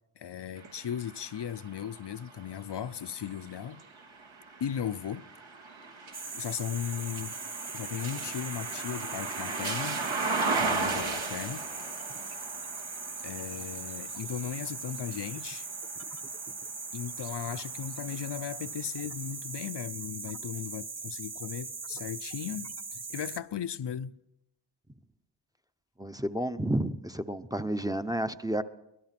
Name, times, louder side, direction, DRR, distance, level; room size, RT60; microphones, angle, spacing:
voice 1, 0.2-3.8 4.6-5.3 6.3-7.4 7.7-10.1 10.6-11.7 13.2-15.7 16.9-24.1, left 9 dB, 60° left, 0.7 m, -37 dB
sound 1, 0.6-16.5 17.1-18.3, right 3 dB, 80° right, 2.4 m, -37 dB
sound 2, 6.1-23.4, right 4 dB, 35° right, 1.2 m, -40 dB
voice 2, 26.0-28.6, right 1 dB, 10° right, 0.7 m, -31 dB
23.5 x 19.0 x 5.9 m
wide cardioid pair, 115°, 46 cm